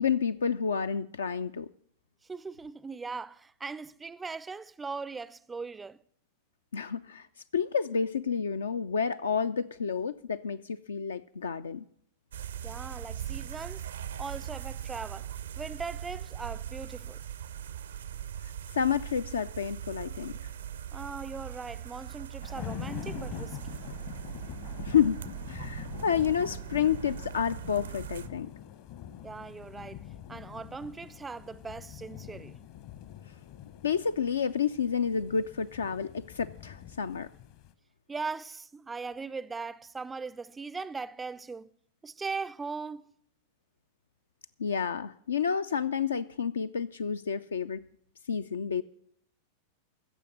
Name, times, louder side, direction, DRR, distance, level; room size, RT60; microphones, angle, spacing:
voice 1, 0.0-1.7 6.7-7.3 7.5-11.8 18.7-20.3 24.8-25.2 25.5-28.5 33.8-37.3 44.6-47.8 48.3-48.8, left 7 dB, 70° left, 0.4 m, -29 dB
voice 2, 2.2-6.0 12.6-13.9 14.2-15.3 15.6-17.2 20.9-23.8 29.2-32.6 38.1-41.7 42.0-43.1, right 4 dB, 15° right, 0.4 m, -39 dB
sound 1, 12.3-28.3, right 10 dB, 65° right, 0.5 m, -40 dB
sound 2, 22.4-37.7, left 11 dB, 45° left, 0.9 m, -44 dB
15.5 x 7.0 x 6.3 m
figure-of-eight pair, 90°, 0 cm